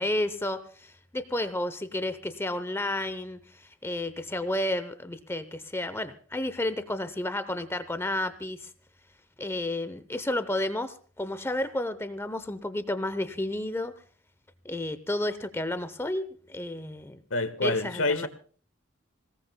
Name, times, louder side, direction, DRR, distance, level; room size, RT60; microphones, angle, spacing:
voice 1, 0.0-8.7 9.4-13.9 14.6-17.2 17.6-18.3, left 1 dB, 10° left, 0.7 m, -31 dB
voice 2, 17.3-18.3, left 2 dB, 70° left, 1.3 m, -27 dB
26.5 x 18.0 x 2.2 m
head